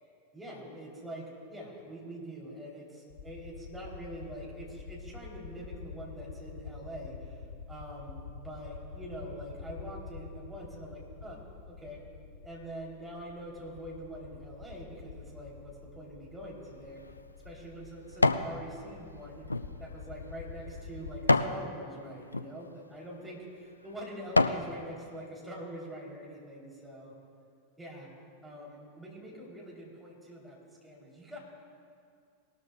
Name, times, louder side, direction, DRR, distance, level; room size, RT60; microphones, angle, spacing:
voice 1, 0.3-7.4 7.7-11.4 11.7-12.0 12.4-17.0 17.4-27.1 27.8-28.1 28.4-31.4, right 1 dB, 5° right, -4 dB, 3.1 m, -44 dB
sound 1, 3.1-21.2, left 5 dB, 65° left, 1.1 m, -47 dB
sound 2, 16.7-18.5 19.0-21.6 22.2-22.5 23.2-23.3 23.8-24.7 25.2-25.3, left 2 dB, 80° left, 0.4 m, -29 dB
19.5 x 13.0 x 2.3 m, 2.3 s
figure-of-eight pair, 90°, 0 cm